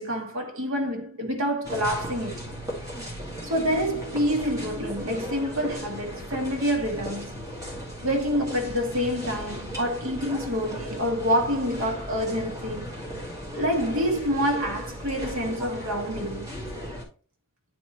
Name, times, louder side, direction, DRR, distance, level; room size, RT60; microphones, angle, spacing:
voice 1, 0.0-2.5 3.4-7.5 8.0-13.0 13.5-16.5, equal, 70° right, 1.6 m, -27 dB
sound 1, 1.6-17.0, equal, 15° right, 1.7 m, -37 dB
9.0 x 4.1 x 3.0 m
head